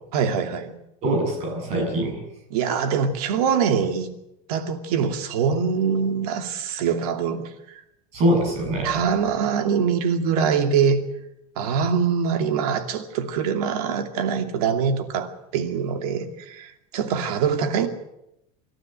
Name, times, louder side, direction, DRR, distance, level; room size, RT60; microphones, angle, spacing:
voice 1, 0.1-0.7 2.5-4.1 4.5-7.5 8.8-11.0 11.6-17.9, right 6 dB, 75° right, 2.6 m, -23 dB
voice 2, 1.0-2.2 8.1-9.0, right 1 dB, 35° right, 7.5 m, -23 dB
26.5 x 12.5 x 9.2 m
cardioid pair, 180°, 20 cm